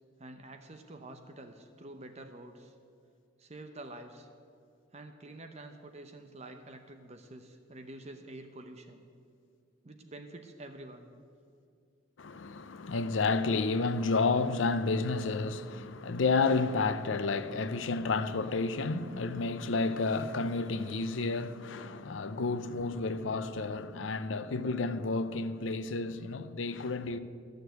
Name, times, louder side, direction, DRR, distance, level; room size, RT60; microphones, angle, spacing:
voice 1, 0.2-2.7 3.4-4.3 4.9-9.0 9.8-11.1, right 2 dB, 35° right, 0.7 m, -48 dB
voice 2, 12.2-27.2, left 3 dB, 75° left, 0.6 m, -31 dB
13.5 x 6.6 x 8.0 m
head